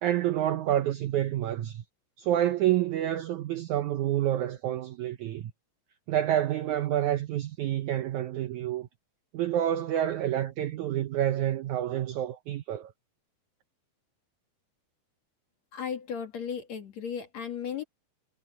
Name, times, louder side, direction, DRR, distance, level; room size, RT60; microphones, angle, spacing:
voice 1, 0.0-1.8 2.2-5.5 6.1-8.9 9.3-12.9, right 12 dB, 75° right, 1.8 m, -28 dB
voice 2, 15.7-17.8, left 7 dB, 50° left, 3.0 m, -35 dB
omnidirectional pair, 4.3 m